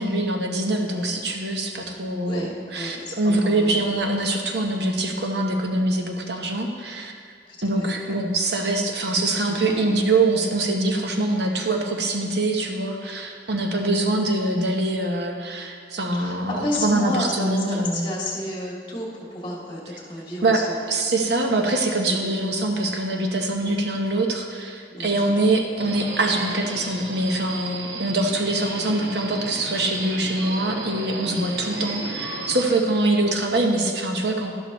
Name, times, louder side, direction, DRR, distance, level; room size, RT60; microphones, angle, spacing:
voice 1, 0.0-7.1 7.6-18.1 20.4-20.6 20.9-34.5, right 2 dB, 70° right, 2 dB, 1.0 m, -24 dB
voice 2, 1.7-3.9 7.5-7.9 9.5-9.6 9.9-10.0 13.6-14.1 16.1-20.8 22.0-22.3 23.6-23.8 24.9-25.5 31.2-31.5, left 1 dB, 25° left, -3 dB, 2.1 m, -32 dB
Subway metro underground, 25.8-32.6, right 2 dB, 85° right, 1.4 m, -34 dB
12.0 x 11.5 x 3.1 m, 2.1 s
head